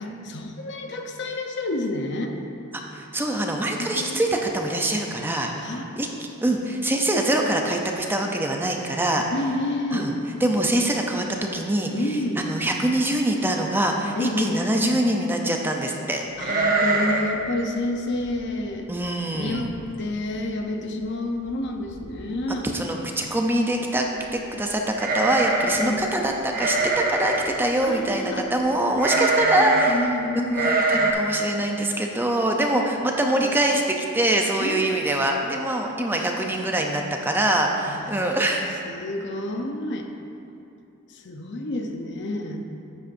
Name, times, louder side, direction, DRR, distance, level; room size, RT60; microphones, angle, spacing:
voice 1, 0.0-2.3 3.8-4.2 5.6-5.8 9.3-10.1 11.9-12.5 14.1-14.6 16.4-18.9 19.3-19.7 20.0-22.7 25.8-26.0 27.8-28.5 29.1-30.6 32.7-33.5 34.6-34.9 37.9-40.1 41.1-42.7, left 1 dB, 55° left, 3 dB, 0.7 m, -29 dB
voice 2, 2.9-5.5 6.0-9.3 9.9-10.1 10.4-11.2 11.5-16.2 18.9-19.7 22.7-30.0 30.5-38.7, right 1 dB, 10° right, 1 dB, 0.5 m, -24 dB
sound 1, 16.4-17.4 17.6-17.7 18.2-18.5 19.0-19.1 19.4-19.9 20.2-20.3 21.5-21.6 21.9-22.3 24.9-26.0 26.5-27.5 29.0-30.0 30.5-31.1, right 2 dB, 45° right, 0.9 m, -23 dB
10.5 x 8.4 x 2.6 m, 2.7 s
head